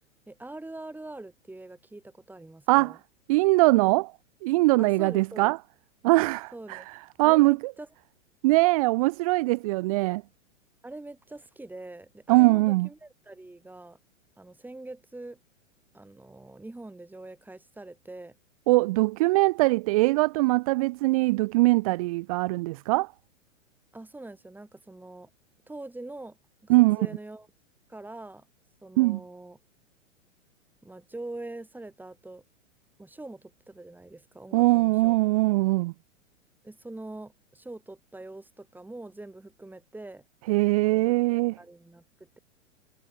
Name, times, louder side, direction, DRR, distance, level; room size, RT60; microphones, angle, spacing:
voice 1, 0.3-3.0 4.8-5.5 6.5-6.9 7.2-7.9 10.8-14.0 14.4-15.4 15.9-18.3 23.9-25.3 25.7-26.4 26.6-27.5 27.9-28.4 28.8-29.6 30.8-32.4 33.0-35.2 36.6-40.2 40.9-41.2 41.6-42.4, right 2 dB, 5° right, 5.8 m, -43 dB
voice 2, 3.3-4.1 4.4-5.6 6.0-6.8 7.2-7.7 8.4-10.2 12.3-12.9 18.7-23.1 26.7-27.0 29.0-29.2 34.5-35.9 40.5-41.5, right 22 dB, 30° right, 0.5 m, -22 dB
figure-of-eight pair, 105°, 38 cm